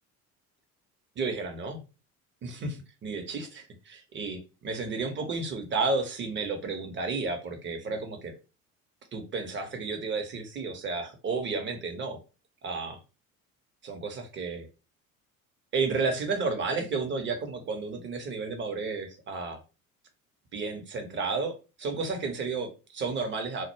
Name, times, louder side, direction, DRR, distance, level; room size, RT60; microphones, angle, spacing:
voice 1, 1.2-1.8 2.4-8.3 9.1-12.2 12.6-13.0 13.8-14.7 15.7-19.6 20.5-23.7, right 4 dB, 25° right, 5 dB, 0.6 m, -32 dB
2.1 x 2.0 x 3.0 m, 0.31 s
figure-of-eight pair, 60°, 42 cm